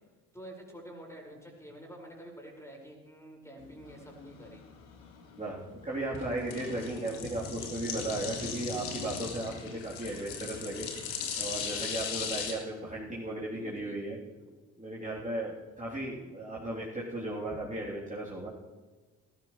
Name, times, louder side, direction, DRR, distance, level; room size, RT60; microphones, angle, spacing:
voice 1, 0.3-4.6 13.5-14.0 14.4-14.5, equal, 5° left, -1 dB, 5.3 m, -48 dB
sound 1, 3.6-12.5, left 6 dB, 75° left, 2.0 m, -39 dB
voice 2, 5.4-14.2 14.8-18.5, right 1 dB, 15° right, -7 dB, 3.4 m, -36 dB
18.5 x 14.0 x 3.2 m, 1.3 s
figure-of-eight pair, 45°, 46 cm